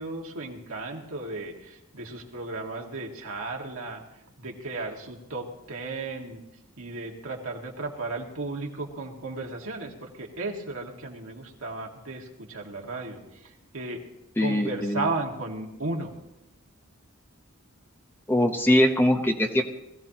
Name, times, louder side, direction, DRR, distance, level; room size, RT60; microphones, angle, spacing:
voice 1, 0.0-4.0 4.4-6.4 6.8-14.0 14.4-16.1, right 2 dB, 70° right, 0 dB, 2.0 m, -35 dB
voice 2, 14.4-15.1 18.3-19.6, left 1 dB, 10° left, 4 dB, 0.9 m, -22 dB
20.5 x 15.0 x 2.9 m, 0.93 s
head